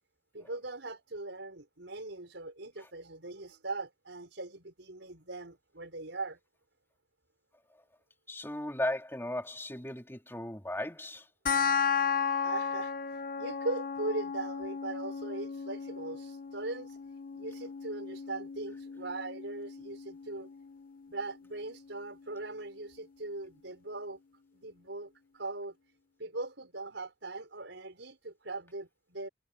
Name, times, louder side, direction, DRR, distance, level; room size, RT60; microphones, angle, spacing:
voice 1, 0.3-6.4 12.4-12.9 13.4-17.0 17.3-20.5 21.1-24.2 24.6-25.7 26.2-29.3, right 2 dB, 85° right, 5.2 m, -40 dB
voice 2, 8.3-11.3, left 1 dB, 15° left, 3.1 m, -36 dB
sound 1, 11.5-22.4, left 6 dB, 50° left, 0.9 m, -35 dB
head